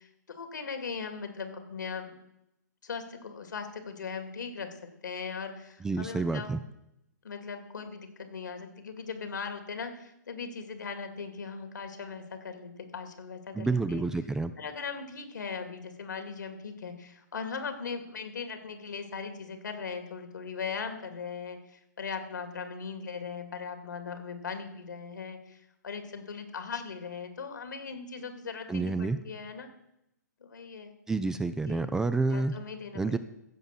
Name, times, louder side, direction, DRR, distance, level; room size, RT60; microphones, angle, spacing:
voice 1, 0.0-2.1 2.8-6.6 7.2-14.0 14.6-29.7 30.4-30.9 31.6-31.9 32.3-33.2, left 5 dB, 80° left, 7 dB, 2.4 m, -39 dB
voice 2, 5.8-6.6 13.6-14.5 28.7-29.2 31.1-32.6 32.9-33.2, right 3 dB, 5° right, 12 dB, 0.4 m, -29 dB
15.0 x 5.5 x 7.7 m, 0.84 s
hypercardioid pair, 140°, 10 cm